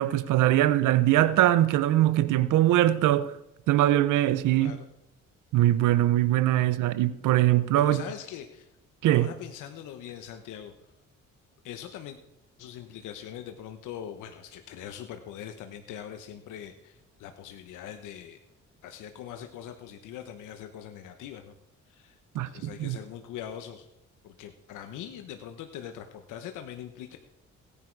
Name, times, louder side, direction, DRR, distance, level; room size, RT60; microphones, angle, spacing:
voice 1, 0.0-3.3 3.7-4.8 5.5-8.0 9.0-9.3 22.3-23.0, right 14 dB, 85° right, 0.7 m, -22 dB
voice 2, 4.5-4.9 7.7-8.7 9.1-10.7 11.6-12.2 12.6-18.4 18.8-21.5 21.9-23.9 24.2-27.2, left 10 dB, 90° left, 1.1 m, -42 dB
17.0 x 10.5 x 4.7 m
cardioid pair, 90°, 30 cm